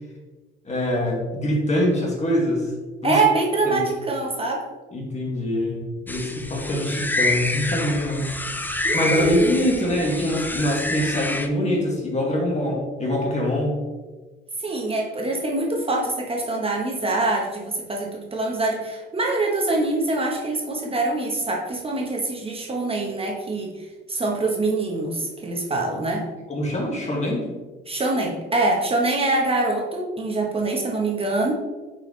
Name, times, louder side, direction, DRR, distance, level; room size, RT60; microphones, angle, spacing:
voice 1, 0.7-2.7 3.0-3.2 3.6-3.9 4.9-8.3 8.6-13.8 26.5-27.5, left 1 dB, 35° left, -2 dB, 2.2 m, -24 dB
voice 2, 3.0-4.6 8.8-9.5 14.6-26.3 27.9-31.5, right 2 dB, 30° right, 0 dB, 1.3 m, -24 dB
sound 1, 6.1-11.5, left 2 dB, 10° left, 0.6 m, -28 dB
8.2 x 5.1 x 3.3 m, 1.3 s
cardioid pair, 90°, 20 cm